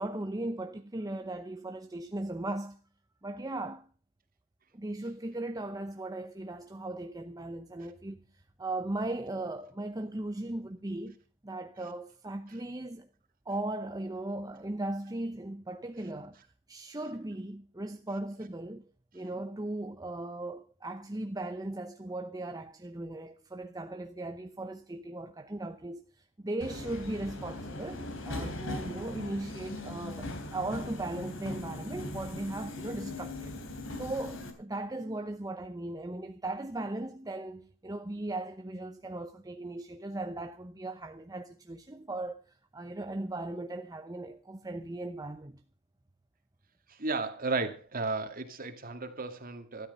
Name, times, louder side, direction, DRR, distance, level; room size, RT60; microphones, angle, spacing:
voice 1, 0.0-2.8 3.2-3.9 4.7-8.2 8.6-11.2 11.4-13.1 13.5-16.4 16.7-18.8 19.1-33.6 33.9-45.6, right 2 dB, 20° right, 0.8 m, -38 dB
Subway metro underground, 26.6-34.5, left 1 dB, 70° left, 3.4 m, -40 dB
voice 2, 47.0-49.9, right 3 dB, 45° right, 2.1 m, -34 dB
13.0 x 13.0 x 5.5 m
head